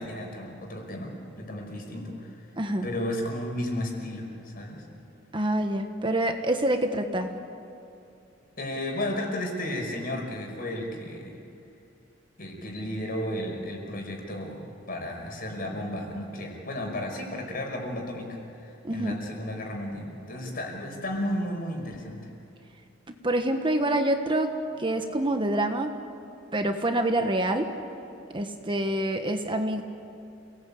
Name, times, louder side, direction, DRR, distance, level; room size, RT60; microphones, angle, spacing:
voice 1, 0.0-2.5 2.8-4.9 8.6-11.4 12.4-22.2, left 1 dB, 50° left, 2 dB, 5.5 m, -33 dB
voice 2, 2.6-2.9 5.3-7.3 18.8-19.2 23.2-25.9 26.5-27.7 28.3-29.8, right 1 dB, 25° right, 6 dB, 1.3 m, -26 dB
29.0 x 19.0 x 8.6 m, 2.7 s
head